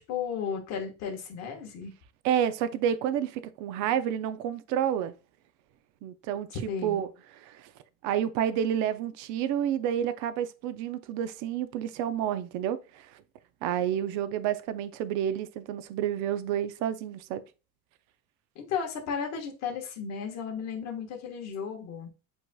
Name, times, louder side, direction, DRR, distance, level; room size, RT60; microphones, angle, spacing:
voice 1, 0.0-1.9 6.5-7.0 18.5-22.1, left 6 dB, 50° left, 1.3 m, -34 dB
voice 2, 2.2-5.1 6.0-6.5 6.8-7.1 7.3-7.7 8.0-13.2 13.6-17.4, right 10 dB, 55° right, 0.5 m, -29 dB
7.7 x 2.8 x 2.2 m
cardioid pair, 180°, 35 cm